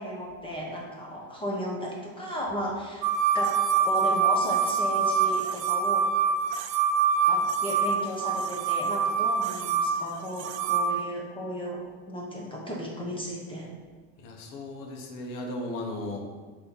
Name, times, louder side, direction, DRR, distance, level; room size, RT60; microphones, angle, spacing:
voice 1, 0.0-3.6 3.8-6.1 7.3-13.7, equal, 15° left, -2 dB, 0.9 m, -34 dB
sound 1, 3.0-10.9, right 6 dB, 55° right, 0.6 m, -25 dB
voice 2, 14.2-16.3, left 1 dB, 60° left, 1 dB, 1.2 m, -36 dB
6.0 x 3.0 x 5.4 m, 1.5 s
supercardioid pair, 125°, 36 cm